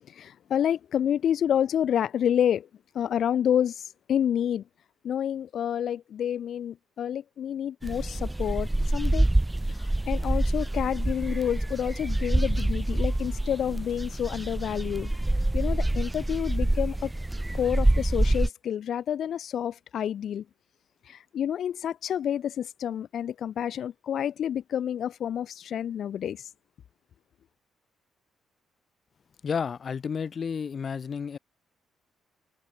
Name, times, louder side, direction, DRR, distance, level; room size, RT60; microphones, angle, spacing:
voice 1, 0.2-2.7 2.9-3.7 4.1-4.6 5.0-9.3 10.1-15.1 15.5-17.1 17.5-20.4 21.1-26.4, left 9 dB, 65° left, 0.9 m, -28 dB
sound 1, 7.8-18.5, right 1 dB, 10° right, 0.7 m, -26 dB
voice 2, 29.4-31.4, left 6 dB, 45° left, 1.6 m, -31 dB
cardioid pair, 90°, 0 cm